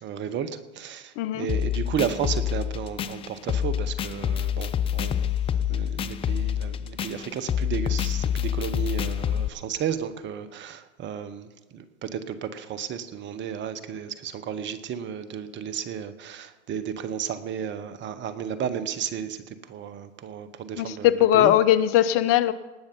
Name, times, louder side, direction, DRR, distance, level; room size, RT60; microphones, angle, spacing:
voice 1, 0.0-5.3 5.7-21.5, right 8 dB, 30° right, 12 dB, 1.1 m, -33 dB
voice 2, 1.2-1.5 20.8-22.5, left 12 dB, 40° left, 16 dB, 0.7 m, -20 dB
sound 1, 1.5-9.5, left 9 dB, 15° left, 0.4 m, -27 dB
19.0 x 6.9 x 5.4 m, 1.2 s
hypercardioid pair, 100°, 36 cm